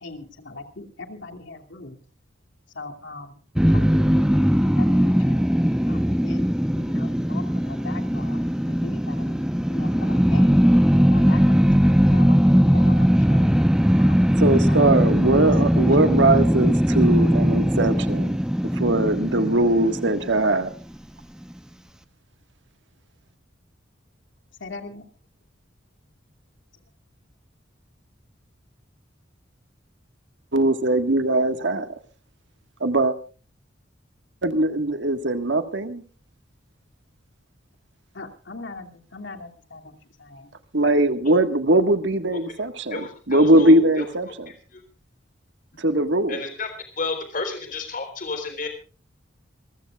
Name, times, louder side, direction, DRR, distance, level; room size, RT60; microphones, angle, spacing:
voice 1, 0.0-2.0 2.8-3.3 3.7-5.4 5.9-8.4 8.8-10.5 11.1-13.5 14.0-15.4 15.7-15.9 24.6-25.0 38.1-40.5, left 3 dB, 70° left, 4 dB, 2.6 m, -40 dB
sound 1, 3.5-20.7, equal, 5° right, 0.8 m, -19 dB
voice 2, 14.4-18.4 18.8-20.7 30.5-31.9 32.8-33.1 34.4-36.0 40.7-44.5 45.8-46.4, right 1 dB, 65° right, 8 dB, 1.6 m, -20 dB
voice 3, 42.9-44.1 44.7-44.8 46.3-46.7 47.0-48.7, left 3 dB, 45° left, 7 dB, 3.8 m, -31 dB
27.0 x 15.5 x 2.4 m, 0.36 s
head